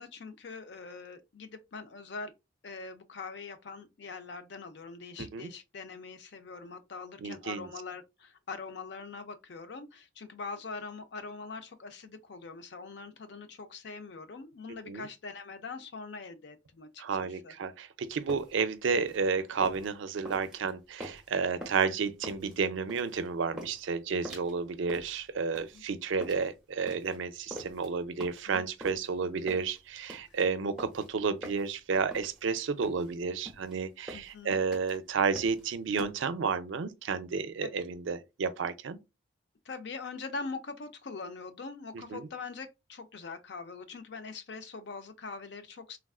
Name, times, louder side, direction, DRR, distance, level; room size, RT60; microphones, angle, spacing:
voice 1, 0.0-2.3 2.6-17.6 25.7-25.8 28.5-28.6 30.3-30.4 34.1-34.6 37.6-37.7 39.6-46.0, left 4 dB, 55° left, 0.5 m, -43 dB
voice 2, 5.2-5.5 7.2-7.7 14.9-15.1 17.0-39.0 41.9-42.2, right 5 dB, 70° right, 0.4 m, -31 dB
sound 1, 18.1-36.1, equal, 5° right, 0.9 m, -46 dB
3.3 x 2.3 x 2.3 m
head